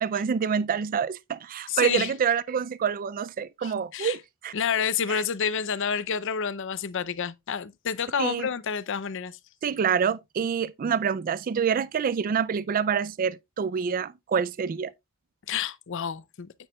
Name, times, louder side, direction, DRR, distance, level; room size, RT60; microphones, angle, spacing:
voice 1, 0.0-4.2 4.4-4.5 5.1-5.2 8.2-8.5 9.6-14.9, right 7 dB, 40° right, 0.3 m, -27 dB
voice 2, 1.7-2.1 3.6-4.2 4.5-9.4 15.5-16.5, left 7 dB, 60° left, 0.6 m, -29 dB
9.1 x 7.9 x 2.3 m
head